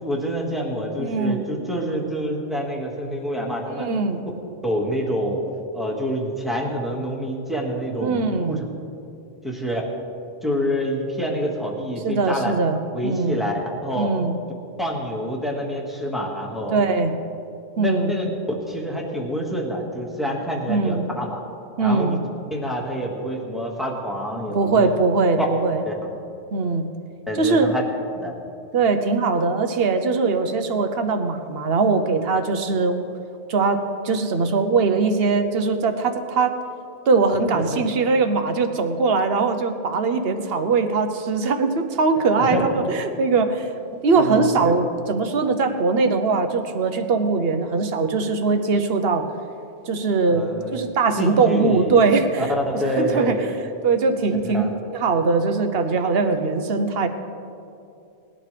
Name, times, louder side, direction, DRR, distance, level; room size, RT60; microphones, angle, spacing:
voice 1, 0.0-3.9 4.6-5.4 5.7-8.6 9.4-9.9 10.4-12.5 12.9-13.5 13.8-14.1 14.8-16.8 17.8-18.3 18.7-21.4 21.8-22.2 22.5-24.9 25.4-25.5 25.8-26.2 27.3-27.8 28.1-28.3 37.5-37.8 42.2-42.6 44.1-44.7 50.2-50.8 51.2-52.0 52.4-53.6 54.4-54.7, equal, ahead, -2 dB, 1.7 m, -27 dB
voice 2, 1.0-1.4 3.7-4.2 8.0-8.6 12.0-13.4 14.0-14.3 16.7-17.1 17.8-18.1 20.7-21.0 21.8-22.2 24.5-25.8 26.5-26.9 27.4-27.7 28.7-33.1 33.5-36.6 37.1-43.7 44.0-49.3 49.9-50.5 50.7-52.5 52.7-53.4 53.8-57.1, right 4 dB, 60° right, 7 dB, 1.0 m, -21 dB
19.5 x 11.5 x 3.4 m, 2.6 s
omnidirectional pair, 1.2 m